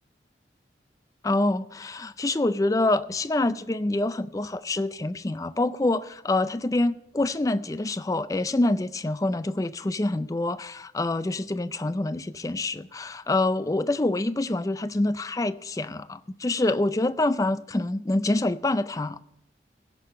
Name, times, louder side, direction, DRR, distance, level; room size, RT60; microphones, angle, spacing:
voice 1, 1.2-19.2, left 2 dB, 20° left, 0.4 m, -26 dB
16.5 x 6.5 x 6.6 m
head